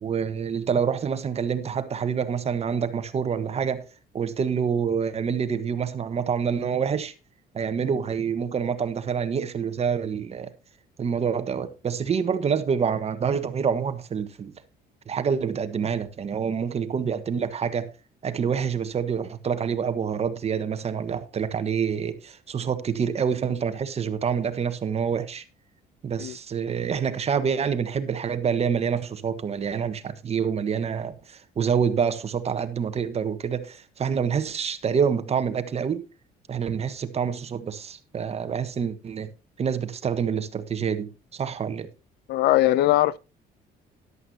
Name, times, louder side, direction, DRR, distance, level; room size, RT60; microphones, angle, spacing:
voice 1, 0.0-3.8 4.1-7.1 7.5-10.5 11.0-14.5 15.1-17.9 18.2-25.4 26.0-36.0 36.5-39.3 39.6-41.9, right 7 dB, 40° right, 1.4 m, -27 dB
voice 2, 42.3-43.2, left 15 dB, 75° left, 0.5 m, -20 dB
13.5 x 11.0 x 2.8 m
cardioid pair, 110°, 17 cm